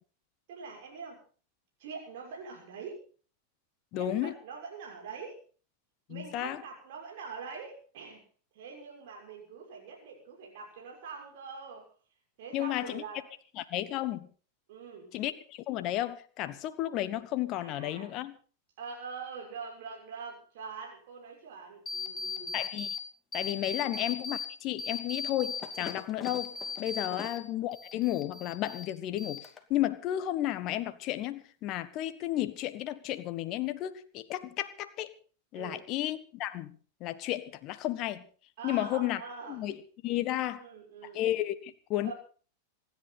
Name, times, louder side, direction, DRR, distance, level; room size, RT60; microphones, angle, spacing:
voice 1, 0.5-1.2 1.8-3.0 3.9-5.4 6.1-8.2 8.5-11.9 12.4-13.2 14.7-15.1 17.6-18.2 18.8-22.6 23.8-23.9 27.0-27.2 35.5-35.8 38.6-39.6 40.3-41.2 42.0-42.1, right 5 dB, 55° right, -1 dB, 6.4 m, -44 dB
voice 2, 3.9-4.3 6.1-6.6 12.5-13.0 13.6-14.3 15.1-18.3 22.5-22.9 23.3-35.1 35.5-38.3 38.6-39.2 39.5-40.6 41.1-42.1, left 14 dB, 40° left, 12 dB, 1.4 m, -33 dB
sound 1, 21.9-23.0 23.3-24.5 24.8-27.4 27.7-28.9 29.2-29.8, left 5 dB, 20° left, 2.5 m, -37 dB
26.5 x 11.0 x 4.1 m, 0.40 s
figure-of-eight pair, 90°, 0 cm